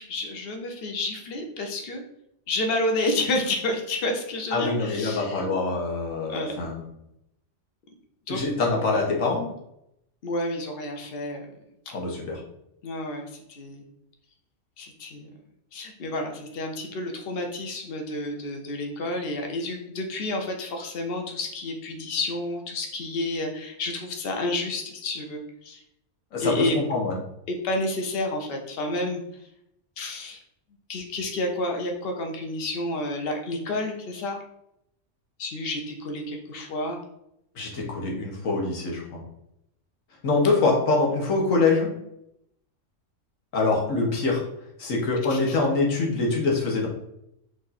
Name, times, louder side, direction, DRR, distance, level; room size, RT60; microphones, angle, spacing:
voice 1, 0.0-2.0 2.5-5.5 6.3-6.6 8.3-8.4 10.2-11.5 12.8-13.8 14.8-15.3 15.7-25.8 26.4-26.8 27.5-29.2 30.0-30.4 30.9-34.4 35.4-37.0 45.3-45.6, left 2 dB, 50° left, 3 dB, 0.9 m, -30 dB
voice 2, 4.5-6.8 8.3-9.5 11.9-12.4 26.3-27.1 37.5-39.2 40.2-41.9 43.5-44.4 44.8-46.9, left 3 dB, 75° left, -1 dB, 1.5 m, -24 dB
5.1 x 2.5 x 4.1 m, 0.80 s
omnidirectional pair, 1.4 m